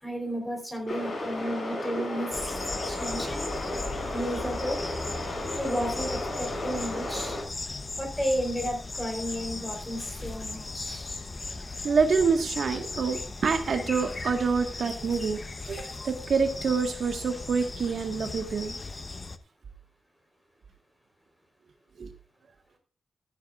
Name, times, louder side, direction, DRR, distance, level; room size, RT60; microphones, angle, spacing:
voice 1, 0.0-2.6 2.8-3.5 4.1-4.8 5.5-7.4 8.0-11.2, equal, 10° left, 3 dB, 4.1 m, -33 dB
sound 1, 0.9-7.4, left 1 dB, 50° left, 7.2 m, -34 dB
birds and oscillating generator, 2.3-19.4, left 3 dB, 30° left, 0.9 m, -37 dB
voice 2, 11.8-15.4 15.7-18.8 22.0-22.1, right 5 dB, 65° right, 4 dB, 1.6 m, -26 dB
14.5 x 13.5 x 2.5 m, 0.37 s
wide cardioid pair, 135°, 0 cm